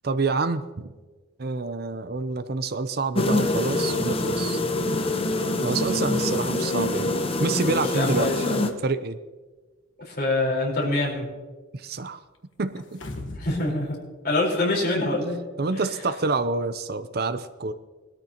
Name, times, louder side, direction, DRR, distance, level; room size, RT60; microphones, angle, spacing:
voice 1, 0.0-0.9 1.4-4.6 5.6-8.5 8.8-9.2 11.7-12.2 12.6-13.0 15.6-17.7, right 3 dB, 50° right, 12 dB, 0.6 m, -27 dB
sound 1, 3.1-8.7, left 2 dB, 30° left, 0.8 m, -25 dB
voice 2, 7.9-8.6 10.0-11.3 13.4-14.0 14.2-15.4 15.7-15.8, left 2 dB, 50° left, -2 dB, 4.2 m, -25 dB
sound 2, 12.8-13.6 14.0-14.1, left 2 dB, 65° left, 1.3 m, -37 dB
21.0 x 13.5 x 2.9 m, 1.3 s
head